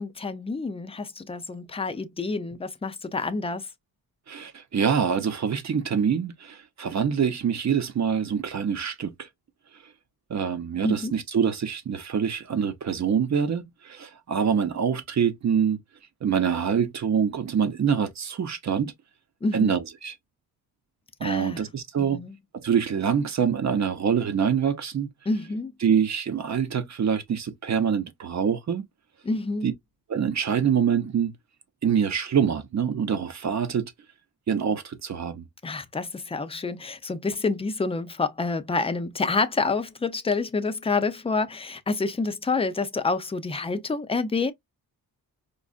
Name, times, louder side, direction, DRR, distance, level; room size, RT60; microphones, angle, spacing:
voice 1, 0.0-3.6 10.8-11.1 19.4-19.7 21.2-21.6 22.0-22.3 25.3-25.7 29.2-29.7 35.6-44.5, left 3 dB, 15° left, 0.4 m, -28 dB
voice 2, 4.3-9.1 10.3-15.8 16.2-18.9 19.5-20.1 21.2-22.2 22.6-25.1 25.8-28.9 29.6-29.7 30.1-31.3 31.8-33.9 34.5-35.4, right 7 dB, 45° right, 0.8 m, -25 dB
5.2 x 2.4 x 2.3 m
wide cardioid pair, 145°, 37 cm